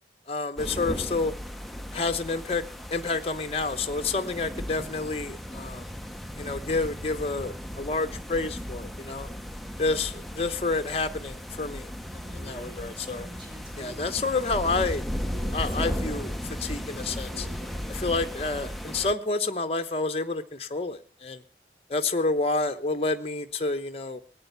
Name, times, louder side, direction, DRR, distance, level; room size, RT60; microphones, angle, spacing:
voice 1, 0.3-1.3 1.9-2.6 2.9-5.9 6.4-9.3 9.8-13.3 13.8-15.0 15.5-17.5 17.9-21.4 21.9-24.2, left 3 dB, 35° left, 8 dB, 1.0 m, -29 dB
sound 1, 0.6-19.1, equal, ahead, 0.8 m, -36 dB
Female speech woman speaking, 12.2-14.1 15.2-16.6 17.0-18.0, equal, 30° right, 3.3 m, -47 dB
18.5 x 9.0 x 6.8 m, 0.39 s
head